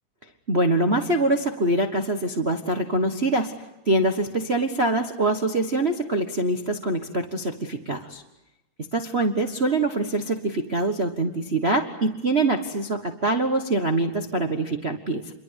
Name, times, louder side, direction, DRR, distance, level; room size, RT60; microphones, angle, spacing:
voice 1, 0.5-3.5 3.9-8.2 8.9-15.3, right 2 dB, 50° right, 5 dB, 0.7 m, -24 dB
29.0 x 23.5 x 8.1 m, 0.91 s
omnidirectional pair, 3.5 m